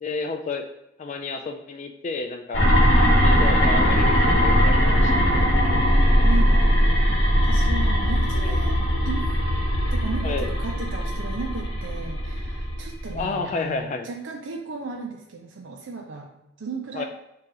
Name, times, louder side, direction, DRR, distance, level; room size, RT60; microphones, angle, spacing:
voice 1, 0.0-0.6 1.0-2.6 3.2-5.2 8.4-8.6 10.2-10.5 13.1-14.1 17.0-17.1, left 4 dB, 35° left, 5 dB, 0.3 m, -31 dB
sound 1, 2.5-13.3, equal, 60° left, 0.9 m, -20 dB
voice 2, 6.2-9.4 9.9-16.3 16.6-17.0, right 4 dB, 65° right, 0 dB, 0.5 m, -35 dB
4.8 x 2.8 x 3.8 m, 0.89 s
head